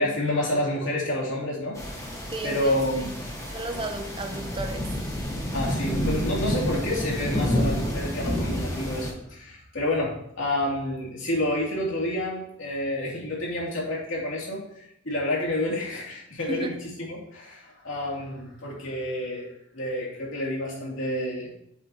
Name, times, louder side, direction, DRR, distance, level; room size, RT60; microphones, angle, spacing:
voice 1, 0.0-1.8 2.4-3.6 5.5-21.5, left 1 dB, 80° left, 2.8 m, -29 dB
sound 1, 1.8-9.1, equal, 15° left, 1.3 m, -29 dB
voice 2, 2.3-3.2 3.5-5.0 16.5-16.8, right 2 dB, 25° right, 0.7 m, -34 dB
8.0 x 7.8 x 2.9 m
head